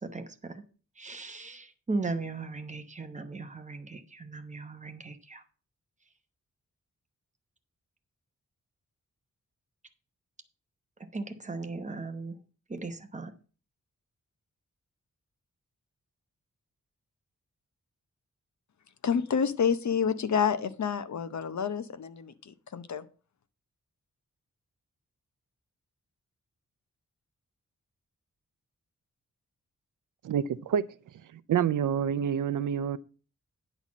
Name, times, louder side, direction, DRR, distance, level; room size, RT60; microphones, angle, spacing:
voice 1, 0.0-0.6 1.0-5.4 11.1-12.4 12.7-13.3, right 3 dB, 25° right, 0.9 m, -37 dB
voice 2, 19.0-23.0, left 7 dB, 65° left, 0.8 m, -29 dB
voice 3, 30.2-30.8 31.3-33.0, right 8 dB, 90° right, 0.5 m, -27 dB
10.0 x 4.1 x 7.3 m
wide cardioid pair, 170°, 31 cm